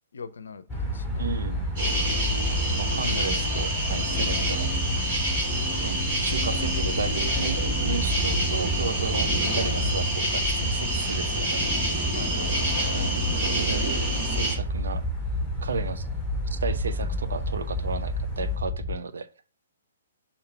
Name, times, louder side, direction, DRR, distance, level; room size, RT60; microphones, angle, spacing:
voice 1, 0.1-1.3 1.9-2.9 12.1-12.5 12.9-13.5, left 5 dB, 65° left, 0.6 m, -43 dB
sound 1, 0.7-19.0, left 1 dB, 15° left, 0.7 m, -31 dB
sound 2, 0.7-18.6, left 1 dB, 15° right, 2.2 m, -34 dB
voice 2, 1.2-1.6 2.7-5.0 5.8-11.6 12.9-15.0 15.6-16.1 16.5-19.3, right 5 dB, 60° right, 0.5 m, -34 dB
sound 3, 1.8-14.6, right 1 dB, 35° right, 2.9 m, -28 dB
6.5 x 2.9 x 5.5 m
figure-of-eight pair, 120°, 0 cm